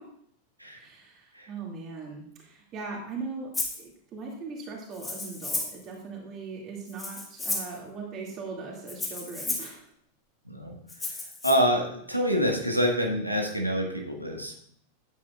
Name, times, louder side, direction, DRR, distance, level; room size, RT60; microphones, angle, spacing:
voice 1, 0.8-9.9, right 4 dB, 35° right, -1 dB, 2.3 m, -40 dB
Rattle (instrument), 3.5-3.8 4.9-5.8 6.9-7.8 8.9-9.7 10.9-11.5, left 3 dB, 15° left, 2.1 m, -33 dB
voice 2, 11.4-14.5, equal, 90° right, 1 dB, 1.5 m, -26 dB
12.5 x 8.6 x 2.4 m, 0.65 s
figure-of-eight pair, 90°, 0 cm